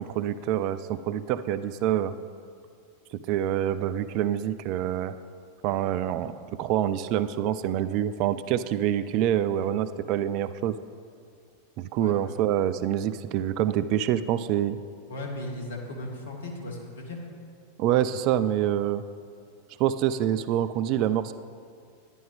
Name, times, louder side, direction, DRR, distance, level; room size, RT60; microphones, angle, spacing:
voice 1, 0.0-2.1 3.1-5.2 5.6-6.3 6.6-10.7 11.8-14.8 17.8-19.0 19.8-21.3, right 11 dB, 40° right, 13 dB, 0.3 m, -26 dB
voice 2, 15.1-17.2, left 1 dB, 60° left, 0 dB, 1.9 m, -36 dB
11.0 x 10.5 x 3.6 m, 2.2 s
figure-of-eight pair, 90°, 0 cm